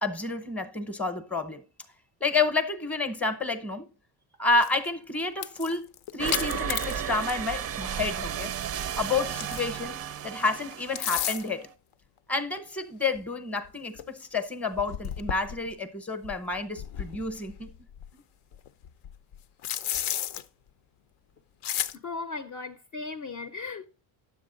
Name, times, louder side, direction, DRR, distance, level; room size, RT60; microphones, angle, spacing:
voice 1, 0.0-1.6 2.2-3.9 4.4-5.9 6.1-8.5 9.0-11.7 12.3-17.7 18.1-18.2, left 3 dB, 5° left, 0.7 m, -29 dB
sound 1, 4.6-4.9 5.3-7.5 7.8-8.0 8.7-9.9 10.7-11.6 12.6-12.7 13.1-13.2 13.7-13.8 14.0-14.1 14.7-15.7 16.2-18.1 18.5-20.4 21.6-22.0, left 11 dB, 75° left, 0.7 m, -33 dB
sound 2, 6.2-11.7, right 9 dB, 35° right, 0.4 m, -34 dB
voice 2, 21.9-23.9, left 4 dB, 40° left, 0.6 m, -37 dB
10.5 x 7.5 x 3.8 m
cardioid pair, 140°, 50 cm